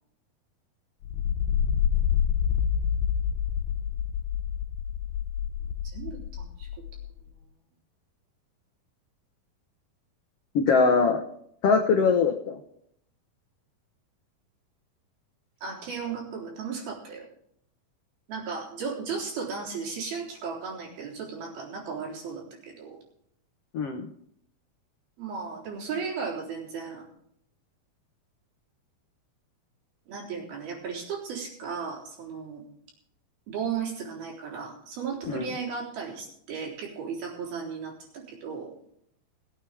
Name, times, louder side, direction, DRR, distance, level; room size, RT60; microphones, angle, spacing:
sound 1, 1.0-7.1, left 8 dB, 90° left, 2.8 m, -27 dB
voice 1, 5.6-6.7 15.6-17.3 18.3-23.0 25.2-27.0 30.1-32.6 33.5-38.7, right 5 dB, 75° right, -1 dB, 5.7 m, -35 dB
voice 2, 10.5-11.2 11.6-12.6 23.7-24.1 35.3-35.5, left 5 dB, 75° left, 4 dB, 1.4 m, -22 dB
22.0 x 9.1 x 3.5 m, 0.71 s
omnidirectional pair, 4.4 m